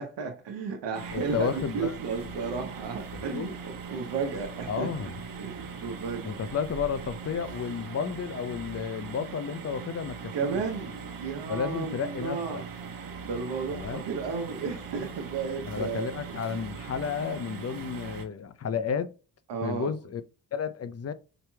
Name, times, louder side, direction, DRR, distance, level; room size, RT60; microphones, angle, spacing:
voice 1, 0.0-5.1 5.4-6.4 10.3-12.6 13.2-16.1 16.4-16.6 19.5-19.9, right 5 dB, 80° right, 1.0 m, -33 dB
voice 2, 0.9-2.0 3.1-3.5 4.7-5.1 6.2-10.6 11.5-12.6 13.7-14.0 15.7-19.1 19.6-20.2 20.5-21.1, left 6 dB, 40° left, 0.6 m, -32 dB
sound 1, 0.9-18.2, right 5 dB, 55° right, 1.2 m, -40 dB
5.0 x 2.9 x 2.3 m
cardioid pair, 60°, 41 cm